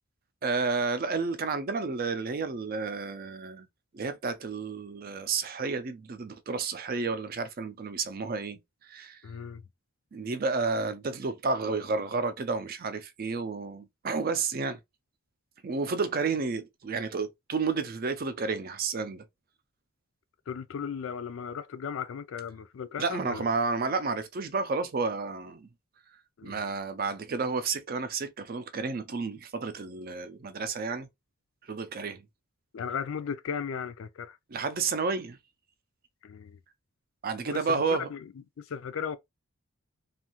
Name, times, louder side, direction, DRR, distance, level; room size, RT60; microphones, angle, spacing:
voice 1, 0.4-3.7 3.9-9.2 10.1-14.8 15.6-19.2 23.0-25.7 26.4-31.1 31.6-32.2 34.5-35.4 37.2-38.1, right 4 dB, 40° right, 0.4 m, -31 dB
voice 2, 9.2-9.6 20.5-23.5 26.4-26.6 32.7-34.4 36.2-36.6 37.4-37.8 38.1-38.3 38.6-39.2, left 7 dB, 65° left, 0.4 m, -36 dB
2.6 x 2.4 x 2.8 m
head